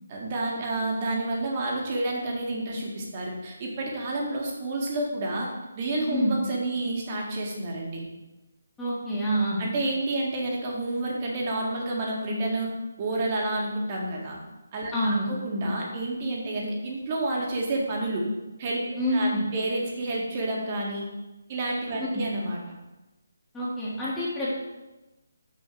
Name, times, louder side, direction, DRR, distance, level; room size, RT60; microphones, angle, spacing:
voice 1, 0.1-5.5 5.8-8.1 9.6-12.7 13.0-14.4 14.7-18.3 18.6-18.8 19.1-21.1 21.5-22.6, right 2 dB, 30° right, -1 dB, 1.8 m, -29 dB
voice 2, 8.8-9.6 14.9-15.3 19.0-19.4 22.0-22.2 23.5-24.5, equal, 10° left, -10 dB, 1.7 m, -26 dB
6.4 x 4.4 x 6.2 m, 1.1 s
figure-of-eight pair, 155°, 0 cm